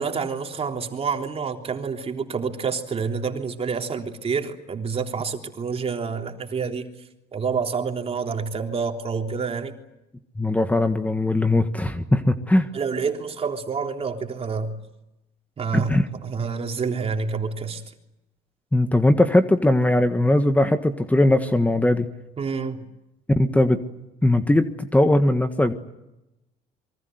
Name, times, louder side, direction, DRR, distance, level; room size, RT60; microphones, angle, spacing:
voice 1, 0.0-6.9 7.3-9.7 12.7-14.8 15.6-17.8 22.4-22.8, right 5 dB, 35° right, 4 dB, 3.5 m, -28 dB
voice 2, 10.4-12.7 15.7-16.0 18.7-22.1 23.4-23.8 24.2-25.7, left 1 dB, 10° left, 8 dB, 1.6 m, -19 dB
27.5 x 23.5 x 8.0 m, 0.92 s
cardioid pair, 110°, 17 cm